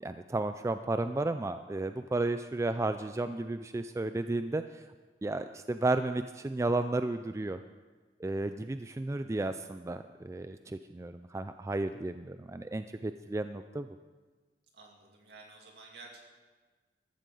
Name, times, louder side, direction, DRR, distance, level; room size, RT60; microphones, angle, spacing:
voice 1, 0.0-4.8 5.2-7.6 8.2-13.9, right 2 dB, 15° right, 10 dB, 0.3 m, -33 dB
voice 2, 14.7-16.2, right 3 dB, 65° right, 0 dB, 2.6 m, -52 dB
14.0 x 14.0 x 3.9 m, 1.3 s
head